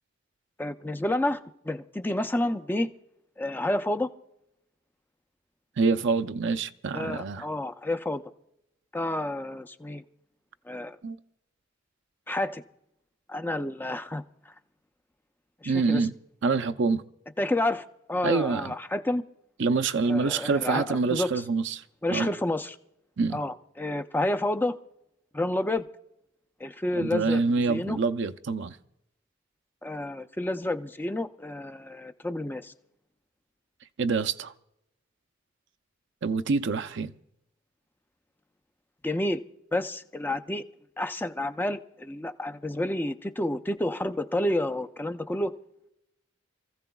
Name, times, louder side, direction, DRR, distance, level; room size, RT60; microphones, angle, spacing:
voice 1, 0.6-2.9 3.4-4.1 6.9-8.2 8.9-10.0 10.7-11.0 12.3-12.6 13.3-14.5 15.6-16.1 17.4-19.2 20.1-21.3 22.0-22.8 23.3-24.8 25.3-25.9 26.6-28.0 29.8-32.7 39.0-39.4 39.7-40.6 41.0-45.5, left 1 dB, 10° left, 0.5 m, -30 dB
voice 2, 5.8-7.4 11.0-11.2 15.7-16.1 16.4-17.0 18.2-18.7 19.6-21.8 22.1-22.3 23.2-23.4 27.0-28.8 34.0-34.5 36.2-37.1, right 4 dB, 65° right, 0.6 m, -26 dB
28.0 x 15.0 x 2.3 m
head